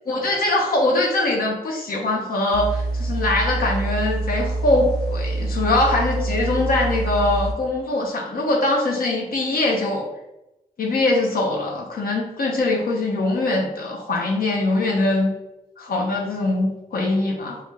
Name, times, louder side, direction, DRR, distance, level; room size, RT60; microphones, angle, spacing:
voice 1, 0.1-10.1 10.8-15.3 15.8-17.6, left 2 dB, 70° left, -1 dB, 0.6 m, -22 dB
sound 1, 2.5-7.5, right 2 dB, 80° right, 0.4 m, -26 dB
3.6 x 2.1 x 3.2 m, 0.94 s
wide cardioid pair, 95°, 16 cm